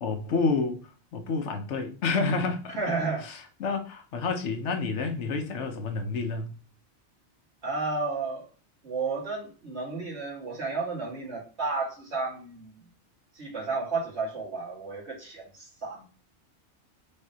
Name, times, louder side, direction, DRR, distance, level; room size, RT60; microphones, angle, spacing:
voice 1, 0.0-2.8 3.2-6.5, left 4 dB, 80° left, 1.1 m, -29 dB
voice 2, 2.8-3.3 7.6-8.4 8.8-12.8 13.3-16.0, right 3 dB, 70° right, 2.2 m, -32 dB
5.2 x 3.5 x 2.8 m
omnidirectional pair, 1.2 m